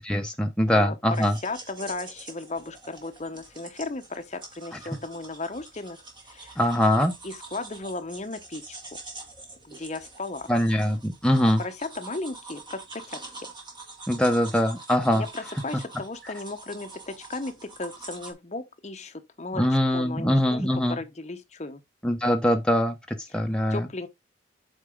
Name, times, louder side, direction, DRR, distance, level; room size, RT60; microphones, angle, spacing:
voice 1, 0.1-1.4 6.6-7.1 10.5-11.6 14.1-15.2 19.5-21.0 22.0-23.0 23.3-23.9, equal, 5° left, 0.7 m, -22 dB
voice 2, 0.7-6.0 6.2-6.6 7.2-8.8 9.6-10.5 11.4-13.5 15.1-21.8 23.3-23.4 23.7-24.1, left 2 dB, 35° left, 0.8 m, -36 dB
sound 1, 1.1-18.3, right 3 dB, 25° right, 1.8 m, -45 dB
8.1 x 4.7 x 3.6 m
head